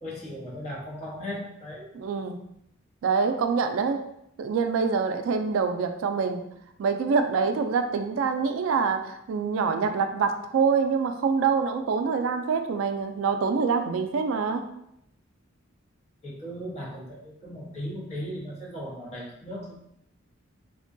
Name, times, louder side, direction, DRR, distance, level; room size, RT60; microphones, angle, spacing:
voice 1, 0.0-1.9 16.2-19.8, equal, 35° left, -5 dB, 0.9 m, -37 dB
voice 2, 1.9-2.4 3.0-4.0 4.4-6.4 6.8-14.6, right 5 dB, 75° right, 7 dB, 0.3 m, -25 dB
3.5 x 2.2 x 2.6 m, 0.77 s
head